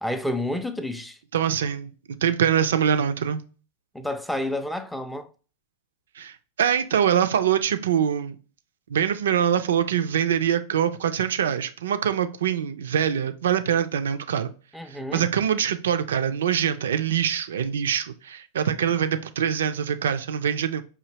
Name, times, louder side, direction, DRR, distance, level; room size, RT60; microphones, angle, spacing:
voice 1, 0.0-1.2 3.9-5.3 14.7-15.3, left 1 dB, ahead, 0.4 m, -30 dB
voice 2, 1.3-1.9 2.2-3.4 6.2-6.3 6.6-8.4 8.9-14.5 15.1-20.8, right 8 dB, 65° right, 0.4 m, -24 dB
4.9 x 2.7 x 2.8 m
figure-of-eight pair, 90°, 0 cm